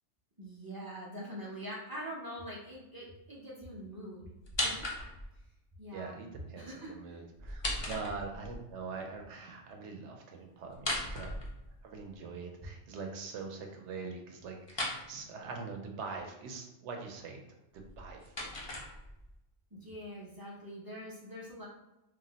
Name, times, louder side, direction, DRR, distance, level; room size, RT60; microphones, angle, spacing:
voice 1, 0.4-4.2 4.6-4.9 5.8-6.2 6.5-7.2 19.7-21.7, equal, 35° right, -5 dB, 0.3 m, -44 dB
sound 1, 4.4-5.4 7.4-8.6 10.7-12.0 14.7-15.0 17.7-19.4, left 1 dB, 40° left, 0.4 m, -37 dB
voice 2, 5.9-11.3 11.8-17.4 17.7-18.3, right 4 dB, 80° right, 2 dB, 0.9 m, -43 dB
2.5 x 2.0 x 3.8 m, 0.94 s
omnidirectional pair, 1.2 m